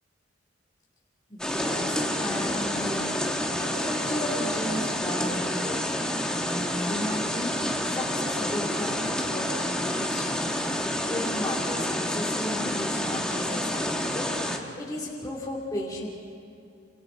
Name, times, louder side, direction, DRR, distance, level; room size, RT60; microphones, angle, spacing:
voice 1, 1.3-5.9 6.3-7.6 7.9-16.1, left 1 dB, 20° left, -4 dB, 2.7 m, -35 dB
sound 1, 1.4-14.6, left 1 dB, 5° left, 1.4 m, -29 dB
28.0 x 26.5 x 4.0 m, 2.4 s
head